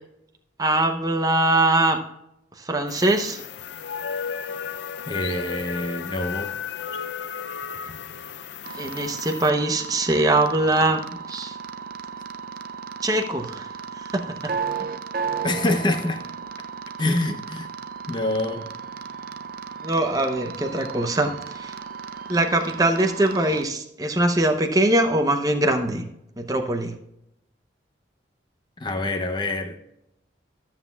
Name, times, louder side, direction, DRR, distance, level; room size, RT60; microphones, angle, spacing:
voice 1, 0.6-2.0 2.6-3.4 8.8-11.0 11.3-11.6 13.0-13.7 14.1-14.5 19.8-21.7 22.3-26.0 26.4-27.0, right 1 dB, 20° right, 4 dB, 0.7 m, -22 dB
sound 1, 2.9-9.5, left 7 dB, 65° left, 0.4 m, -34 dB
voice 2, 5.1-6.5 15.4-16.2 17.0-17.7 18.1-18.7 28.8-29.8, left 2 dB, 25° left, 7 dB, 0.7 m, -26 dB
sound 2, 8.6-23.6, right 6 dB, 50° right, 0.4 m, -35 dB
13.5 x 7.4 x 2.3 m, 0.82 s
head